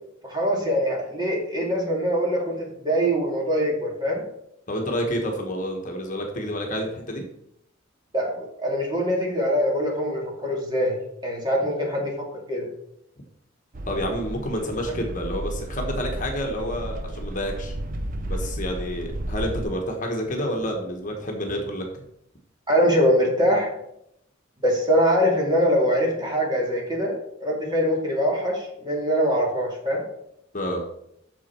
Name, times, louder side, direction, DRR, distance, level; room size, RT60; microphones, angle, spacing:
voice 1, 0.2-4.2 8.1-11.0 11.2-12.1 12.5-12.7 14.9-15.0 22.7-23.7 24.6-30.0, equal, 20° right, -2 dB, 2.3 m, -23 dB
voice 2, 4.7-7.2 13.9-17.7 18.3-21.9 30.5-30.8, equal, 40° left, 2 dB, 1.3 m, -29 dB
sound 1, 13.7-19.6, right 1 dB, 45° right, 0.7 m, -32 dB
8.4 x 6.5 x 4.5 m, 0.77 s
head